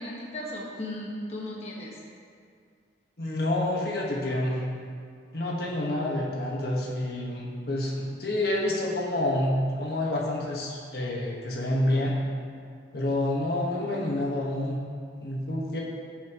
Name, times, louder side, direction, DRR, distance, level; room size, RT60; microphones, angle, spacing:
voice 1, 0.0-2.0, left 1 dB, 35° left, -4 dB, 1.5 m, -36 dB
voice 2, 3.2-4.6 5.3-12.2 12.9-14.8 15.2-15.8, left 1 dB, 60° left, -3 dB, 1.5 m, -28 dB
17.5 x 7.3 x 3.1 m, 2.2 s
head